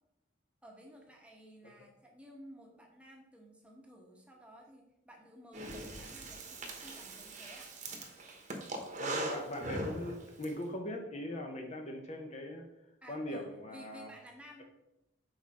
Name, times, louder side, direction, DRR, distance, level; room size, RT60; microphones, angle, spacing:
voice 1, 0.6-7.7 13.0-14.6, equal, 5° right, 0 dB, 1.0 m, -54 dB
Breathing, 5.5-10.5, right 2 dB, 40° right, 1.0 m, -40 dB
voice 2, 9.0-12.7 13.1-14.1, left 1 dB, 35° left, 3 dB, 0.7 m, -40 dB
6.5 x 4.6 x 4.1 m, 0.88 s
head